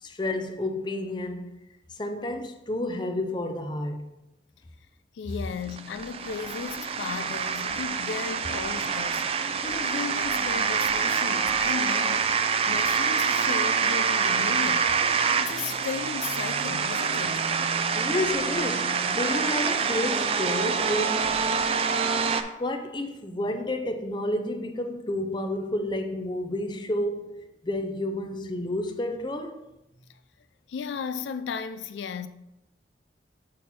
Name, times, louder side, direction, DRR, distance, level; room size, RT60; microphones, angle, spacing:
voice 1, 0.0-1.5 1.9-4.1 14.8-15.1 17.9-21.3 22.6-29.6, left 1 dB, 25° left, 0.6 m, -30 dB
voice 2, 5.1-17.4 30.7-32.3, left 6 dB, 90° left, 0.4 m, -35 dB
sound 1, 5.4-22.4, right 6 dB, 35° right, 0.3 m, -26 dB
6.3 x 4.2 x 4.2 m
head